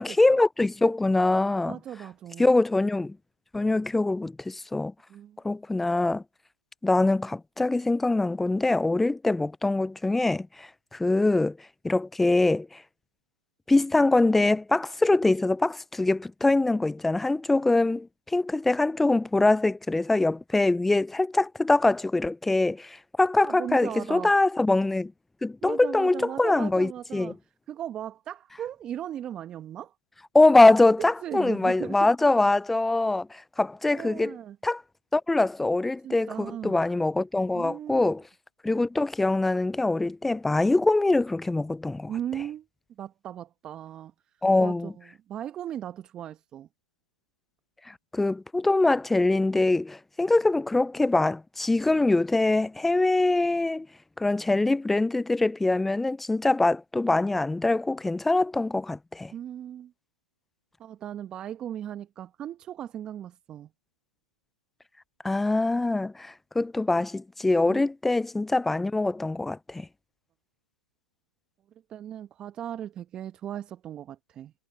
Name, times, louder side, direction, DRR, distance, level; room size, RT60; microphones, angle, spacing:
voice 1, 0.0-1.8 2.4-3.2 3.5-4.9 5.4-6.2 6.8-11.6 11.8-12.8 13.7-25.1 25.4-27.4 30.3-34.4 34.6-34.8 35.1-38.2 38.6-42.1 44.4-44.9 47.9-53.9 54.2-59.3 65.2-69.9, left 2 dB, 5° left, 0.4 m, -23 dB
voice 2, 1.7-2.5 5.1-5.4 23.4-24.3 25.6-27.4 27.7-29.9 31.2-32.1 33.9-34.6 36.0-36.8 37.5-38.1 42.1-42.7 43.0-44.1 44.6-44.8 45.3-46.7 59.3-59.9 60.8-63.7 67.7-67.8 71.9-74.5, right 10 dB, 20° right, 1.2 m, -37 dB
hypercardioid pair, 125°, 4 cm